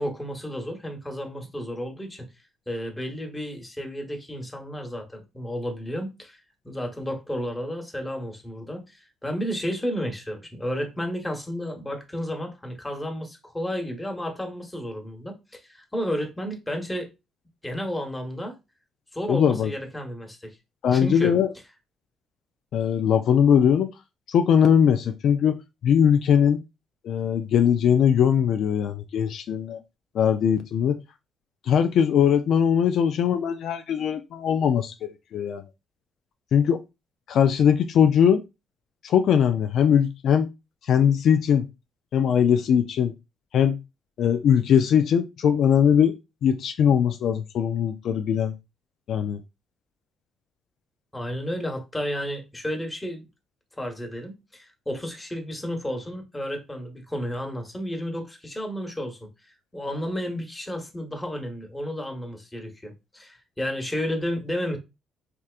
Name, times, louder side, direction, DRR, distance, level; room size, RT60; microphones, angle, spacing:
voice 1, 0.0-2.3 2.7-6.4 6.6-17.1 17.6-18.6 19.1-20.6 20.9-21.3 51.1-53.2 53.8-59.3 59.7-64.8, equal, 10° left, 1.0 m, -32 dB
voice 2, 19.3-19.7 20.8-21.5 22.7-23.9 24.3-25.6 25.8-26.6 27.0-29.8 30.1-31.0 31.7-35.6 36.5-36.8 37.3-38.4 39.0-40.5 40.8-41.7 42.1-43.1 43.5-43.8 44.2-46.1 46.4-48.6 49.1-49.4, left 8 dB, 70° left, 0.3 m, -20 dB
3.3 x 2.8 x 2.4 m
cardioid pair, 90°, 0 cm